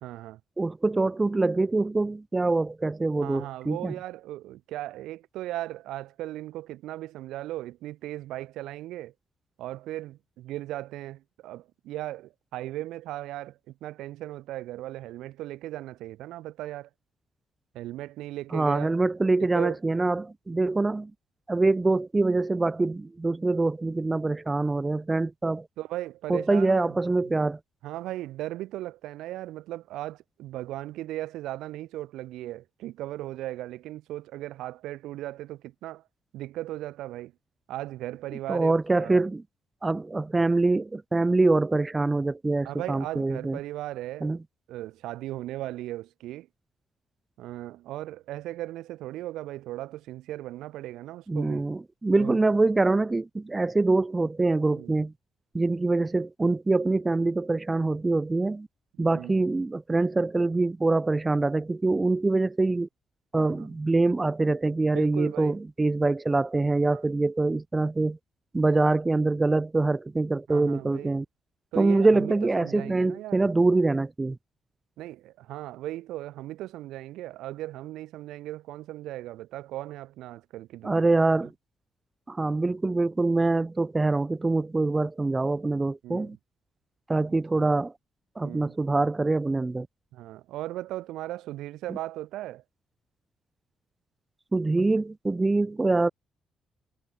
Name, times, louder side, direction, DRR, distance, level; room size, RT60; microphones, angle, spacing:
voice 1, 0.0-0.4 3.2-9.1 9.6-16.9 17.7-19.0 19.4-19.8 25.8-27.4 27.8-36.0 36.3-37.3 37.7-39.3 42.6-44.3 44.7-46.5 47.4-51.6 52.2-52.4 54.7-54.9 59.1-59.4 63.4-63.7 64.9-65.6 66.9-67.0 70.5-71.1 71.7-73.4 75.0-81.1 81.4-81.5 86.0-86.4 87.6-87.7 88.4-88.8 90.1-92.6, right 15 dB, 90° right, 1.6 m, -37 dB
voice 2, 0.6-3.9 18.5-21.1 21.5-25.7 26.3-27.6 38.5-39.4 39.8-43.6 44.2-44.4 51.3-55.1 55.5-58.7 59.0-62.9 63.3-68.2 68.5-71.3 71.8-74.4 80.8-81.5 82.3-86.4 87.1-87.9 88.4-89.9 91.9-92.0 94.5-96.1, right 3 dB, 20° right, 0.3 m, -24 dB
cardioid pair, 90°, 0 cm